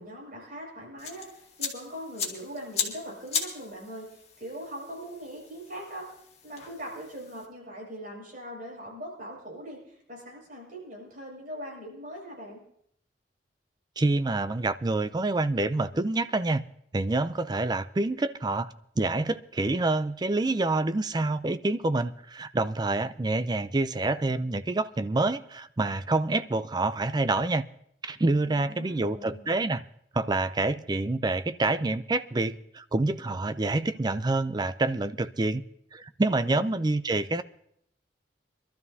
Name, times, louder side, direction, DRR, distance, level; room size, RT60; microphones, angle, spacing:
voice 1, 0.0-6.1 6.4-12.6 28.4-29.5 36.5-36.7, equal, 50° right, 5.9 m, -41 dB
sound 1, 1.0-7.5, left 6 dB, 35° left, 1.9 m, -37 dB
voice 2, 14.0-16.6 16.9-27.7 28.0-29.8 30.1-35.6 35.9-37.4, right 2 dB, 25° right, 0.4 m, -27 dB
24.0 x 12.5 x 2.7 m
head